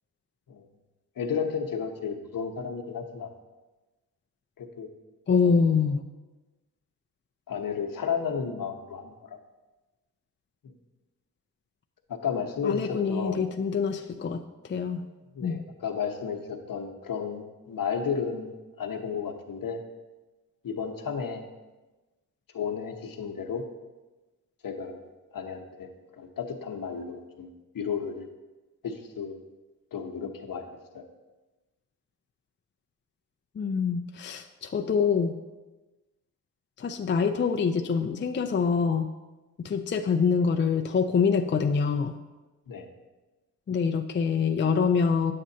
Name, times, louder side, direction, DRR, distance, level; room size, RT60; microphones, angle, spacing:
voice 1, 1.2-3.3 4.6-4.9 5.4-5.7 7.5-9.1 12.1-13.5 15.3-19.8 20.6-21.4 22.5-23.6 24.6-25.0 25.3-25.9 26.2-28.3 28.8-29.4 29.9-30.6 30.9-31.0 42.7-42.9, left 6 dB, 60° left, 3 dB, 1.0 m, -33 dB
voice 2, 5.3-6.0 12.6-14.4 14.7-15.0 15.4-15.6 33.6-35.3 36.8-39.1 39.6-42.1 43.7-45.3, left 5 dB, 30° left, 4 dB, 0.5 m, -25 dB
8.7 x 7.5 x 2.8 m, 1.2 s
cardioid pair, 55°, 38 cm